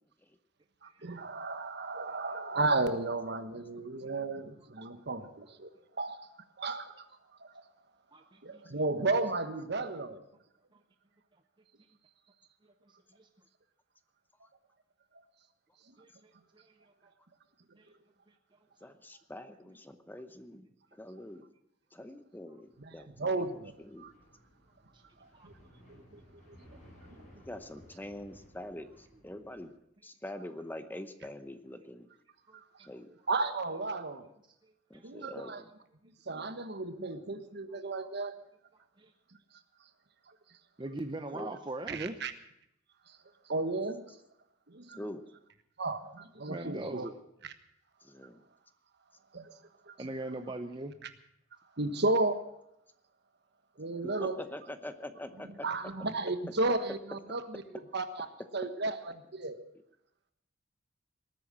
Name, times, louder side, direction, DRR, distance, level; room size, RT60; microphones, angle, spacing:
voice 1, 0.8-5.7 6.0-6.3 6.6-7.1 7.4-7.5 8.4-10.2 15.9-16.0 22.8-23.7 24.0-24.1 25.2-25.5 26.1-26.6 32.5-32.9 33.3-34.3 35.0-35.6 36.2-38.3 40.3-40.4 41.9-42.3 43.1-43.2 43.4-44.2 44.7-45.0 45.8-47.1 47.4-47.5 49.3-49.5 49.9-50.4 51.0-51.1 51.8-52.4 53.8-54.4 55.6-57.6 57.9-58.3 58.5-59.6, right 2 dB, 60° right, 9 dB, 1.3 m, -34 dB
voice 2, 8.1-8.6 12.6-13.3 16.0-16.7 17.0-17.1 17.8-17.9 24.9-25.0 25.3-25.5 32.5-32.6 34.6-35.1 39.0-39.1 40.8-42.1 46.5-47.1 50.0-50.9, right 2 dB, 25° right, 6 dB, 0.7 m, -41 dB
voice 3, 18.8-21.4 21.9-23.4 23.8-24.0 27.5-29.7 30.0-32.1 32.9-33.1 34.9-35.7 41.3-41.5 44.9-45.2 48.0-48.4 54.2-55.7, left 1 dB, 10° left, 10 dB, 0.8 m, -44 dB
sound 1, 22.7-29.7, equal, 40° left, 6.6 m, -59 dB
19.0 x 9.1 x 7.5 m, 0.79 s
head